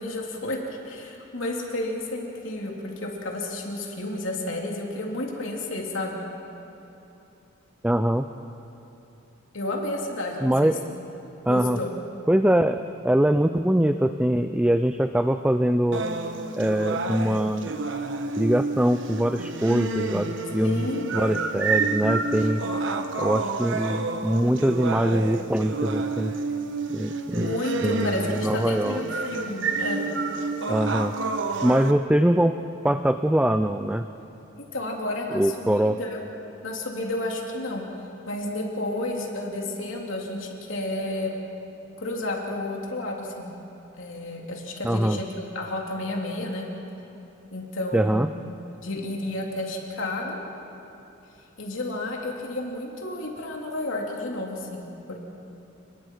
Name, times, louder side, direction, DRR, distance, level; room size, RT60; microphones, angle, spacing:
voice 1, 0.0-6.2 9.5-10.7 11.5-12.0 20.6-21.2 27.4-30.1 34.5-36.3 36.6-37.8 38.3-41.3 42.0-43.5 44.0-46.7 47.5-48.3 48.8-50.4 51.6-55.2, left 1 dB, 70° left, -1 dB, 3.0 m, -31 dB
voice 2, 7.8-8.3 10.4-10.8 11.5-11.8 12.3-16.0 16.6-17.7 18.4-22.6 23.2-26.3 26.9-27.5 27.8-29.0 30.7-31.1 31.6-32.6 32.8-34.0 35.3-36.0 44.8-45.2 47.9-48.3, right 1 dB, 5° right, 8 dB, 0.4 m, -23 dB
sound 1, 15.9-31.9, right 3 dB, 65° right, 1.2 m, -29 dB
29.5 x 20.5 x 4.7 m, 3.0 s
head